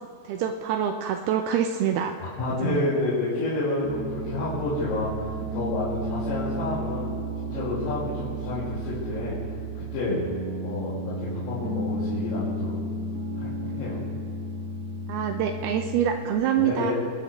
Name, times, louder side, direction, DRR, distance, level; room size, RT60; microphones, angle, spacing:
voice 1, 0.2-2.2 2.6-2.9 15.1-16.9, right 9 dB, 85° right, 5 dB, 2.2 m, -26 dB
voice 2, 2.2-9.4 9.7-10.2 10.6-12.7 13.4-14.0 16.6-16.9, left 2 dB, 80° left, -11 dB, 5.1 m, -29 dB
Piano, 3.8-16.3, right 1 dB, 65° right, 1.5 m, -33 dB
23.5 x 12.5 x 3.3 m, 2.5 s
omnidirectional pair, 5.1 m